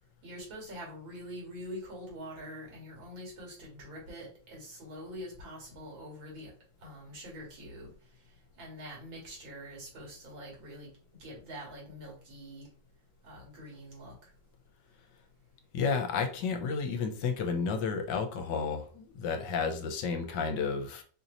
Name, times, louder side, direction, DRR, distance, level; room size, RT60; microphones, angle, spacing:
voice 1, 0.2-6.5 6.8-7.9 8.6-10.9 11.2-12.7 13.2-14.3, equal, 85° right, -3 dB, 2.8 m, -45 dB
voice 2, 15.7-21.0, left 5 dB, 75° left, 6 dB, 1.2 m, -31 dB
4.5 x 2.8 x 3.9 m, 0.42 s
omnidirectional pair, 2.1 m